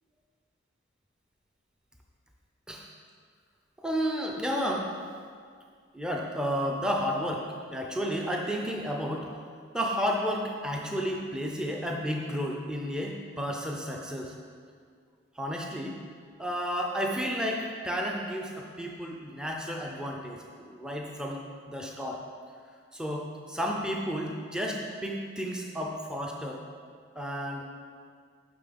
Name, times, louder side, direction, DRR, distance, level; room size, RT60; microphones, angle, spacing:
voice 1, 3.8-4.9 5.9-9.3 9.7-14.3 15.4-16.0 16.4-20.4 20.7-21.4 21.7-22.2 22.9-26.6 27.2-27.7, equal, 5° right, -1 dB, 0.7 m, -32 dB
6.9 x 5.7 x 7.0 m, 2.1 s
head